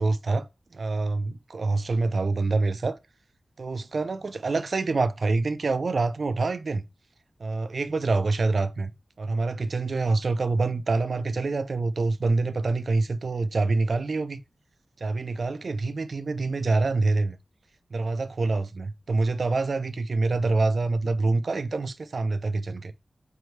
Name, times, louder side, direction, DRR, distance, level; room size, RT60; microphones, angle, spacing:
voice 1, 0.0-3.0 3.6-6.8 7.4-14.4 15.0-17.4 17.9-22.9, right 3 dB, 65° right, 0.4 m, -26 dB
4.6 x 2.7 x 3.1 m
wide cardioid pair, 95°, 0 cm